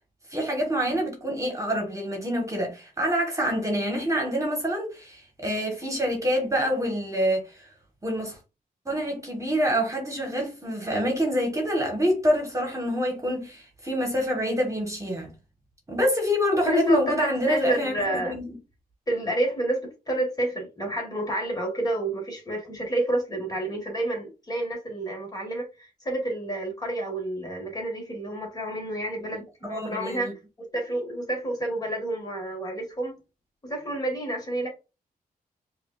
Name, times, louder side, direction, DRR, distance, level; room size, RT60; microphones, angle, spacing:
voice 1, 0.3-7.7 8.0-8.4 8.8-15.3 15.9-18.5 29.6-30.3, equal, 20° right, 1.5 m, -26 dB
voice 2, 16.7-18.4 19.1-30.3 30.7-33.2 33.6-34.7, right 1 dB, 25° left, 1.9 m, -29 dB
5.0 x 2.6 x 2.5 m
wide cardioid pair, 115°, 15 cm